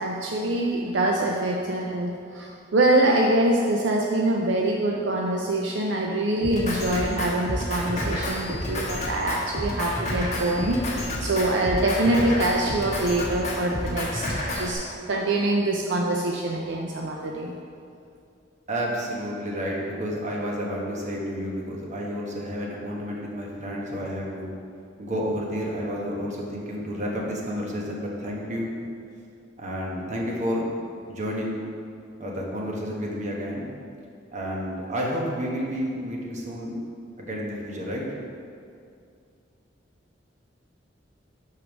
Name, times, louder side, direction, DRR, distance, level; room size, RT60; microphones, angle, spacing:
voice 1, 0.0-17.5, right 1 dB, 70° right, 0 dB, 0.5 m, -24 dB
Drum kit, 6.4-14.7, left 1 dB, 40° left, 1.3 m, -30 dB
voice 2, 18.7-24.5 25.0-28.8 29.6-30.6 31.1-31.6 32.2-33.7 34.3-36.8 37.2-38.1, equal, 40° right, -3 dB, 1.1 m, -30 dB
5.2 x 4.7 x 5.9 m, 2.4 s
head